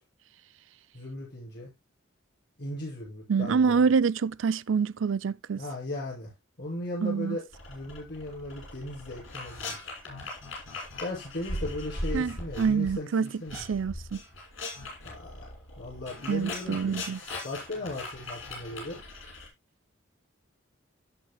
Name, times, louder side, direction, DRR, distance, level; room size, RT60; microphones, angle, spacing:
voice 1, 0.9-1.7 2.6-3.8 5.6-6.3 6.6-7.4 7.7-9.9 11.0-13.6 15.0-15.5 15.8-17.0 17.4-19.0, left 1 dB, 60° left, 5.9 m, -37 dB
voice 2, 3.3-5.6 7.0-7.4 12.1-14.2 16.3-17.2, right 5 dB, 75° right, 0.5 m, -26 dB
sound 1, 7.5-12.9 13.2-19.5, left 2 dB, 85° left, 6.3 m, -39 dB
17.0 x 5.7 x 2.2 m
head